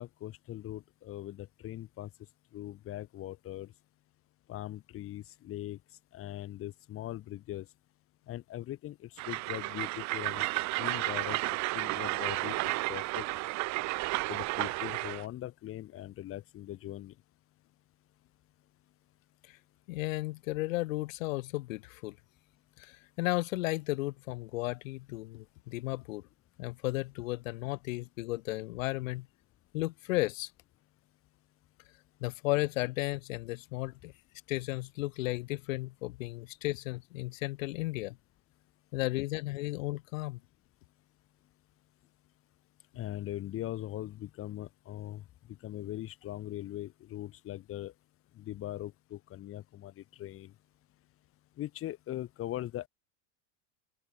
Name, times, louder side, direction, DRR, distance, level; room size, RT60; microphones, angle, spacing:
voice 1, 0.0-2.1 2.5-3.7 4.5-5.8 6.1-7.7 8.3-10.5 10.8-11.4 11.7-12.6 12.9-13.3 14.3-17.1 42.9-45.2 45.6-47.9 48.4-50.5 51.6-52.9, left 14 dB, 35° left, 3.0 m, -40 dB
Train, 9.2-15.2, right 21 dB, 45° right, 2.1 m, -32 dB
voice 2, 19.9-22.2 22.8-26.2 26.6-29.3 29.7-30.5 32.2-34.1 34.5-38.2 38.9-40.4, left 20 dB, 85° left, 4.1 m, -34 dB
open air
cardioid pair, 160°, 38 cm